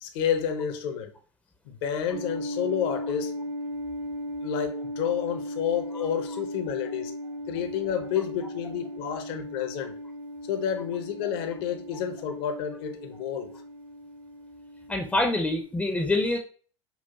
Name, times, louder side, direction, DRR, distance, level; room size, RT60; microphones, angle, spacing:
voice 1, 0.0-1.1 1.6-3.4 4.4-7.1 7.5-9.9 10.5-13.5, left 8 dB, 55° left, 0.8 m, -30 dB
sound 1, 2.1-15.6, equal, 50° right, 1.0 m, -37 dB
voice 2, 14.9-16.4, left 2 dB, 10° left, 0.6 m, -25 dB
5.4 x 2.4 x 2.8 m
figure-of-eight pair, 85°, 16 cm